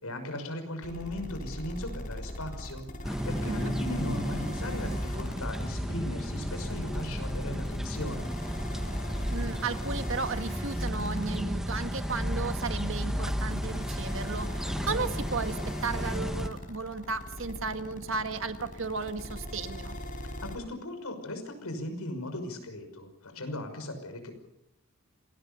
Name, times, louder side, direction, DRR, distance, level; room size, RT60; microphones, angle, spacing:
voice 1, 0.0-8.3 20.4-24.3, left 1 dB, 85° left, 7 dB, 5.8 m, -38 dB
sound 1, 0.8-20.6, equal, 35° left, 5.1 m, -40 dB
sound 2, 3.0-16.5, equal, ahead, 1.2 m, -33 dB
voice 2, 9.3-20.0, right 4 dB, 60° right, 8 dB, 1.7 m, -34 dB
28.0 x 20.0 x 7.0 m, 0.81 s
head